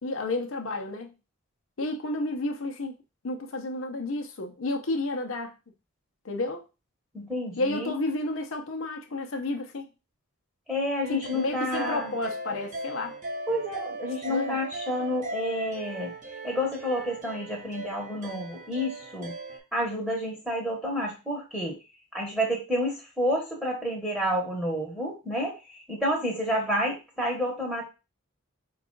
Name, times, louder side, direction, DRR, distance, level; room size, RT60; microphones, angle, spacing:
voice 1, 0.0-1.1 1.8-3.0 3.2-5.5 6.2-6.6 7.6-9.9 11.1-13.2 14.3-14.6, left 2 dB, 65° left, 0.7 m, -31 dB
voice 2, 7.1-7.9 10.7-12.1 13.5-16.1 16.4-19.3 19.7-21.8 22.1-27.8, equal, ahead, 1.0 m, -29 dB
sound 1, 11.0-19.6, right 2 dB, 35° right, 0.8 m, -38 dB
4.6 x 2.4 x 3.8 m
head